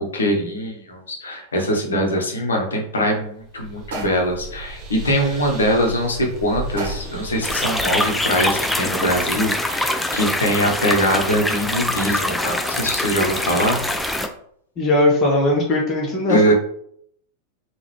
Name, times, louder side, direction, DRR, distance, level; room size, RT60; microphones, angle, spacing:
voice 1, 0.0-13.8 16.3-16.5, equal, 70° left, 1 dB, 0.9 m, -22 dB
sound 1, 3.2-8.5, right 2 dB, 35° right, 1.1 m, -36 dB
sound 2, 3.9-4.5 6.8-7.3, right 2 dB, 55° right, 0.8 m, -32 dB
sound 3, 7.4-14.3, left 1 dB, 5° left, 0.4 m, -24 dB
voice 2, 14.8-16.5, left 1 dB, 30° left, -2 dB, 0.9 m, -19 dB
3.7 x 2.4 x 3.1 m, 0.67 s
figure-of-eight pair, 90°, 0 cm